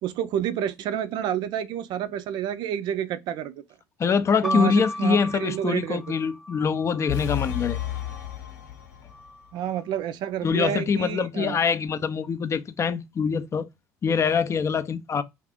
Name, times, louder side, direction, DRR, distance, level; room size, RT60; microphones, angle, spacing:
voice 1, 0.0-3.6 4.4-6.0 9.5-11.6, right 10 dB, 55° right, 0.4 m, -29 dB
voice 2, 4.0-7.8 10.4-13.7 14.0-15.2, left 6 dB, 30° left, 0.4 m, -24 dB
sound 1, 4.4-8.3 9.1-9.8, left 1 dB, ahead, 0.7 m, -36 dB
sound 2, 7.1-9.3, left 12 dB, 75° left, 0.9 m, -32 dB
2.5 x 2.4 x 3.4 m
hypercardioid pair, 70°, 9 cm